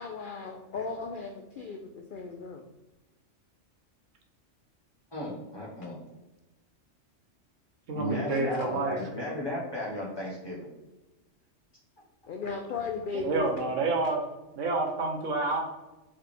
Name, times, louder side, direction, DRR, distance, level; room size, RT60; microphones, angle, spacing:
voice 1, 0.0-2.6 12.3-13.5, left 4 dB, 65° left, 4 dB, 0.5 m, -36 dB
voice 2, 5.1-6.0 7.9-10.7, left 1 dB, 20° left, -5 dB, 1.4 m, -34 dB
voice 3, 7.9-9.0 13.1-14.2 14.5-15.6, right 3 dB, 75° right, 3 dB, 1.2 m, -28 dB
4.7 x 3.3 x 3.3 m, 1.0 s
omnidirectional pair, 1.3 m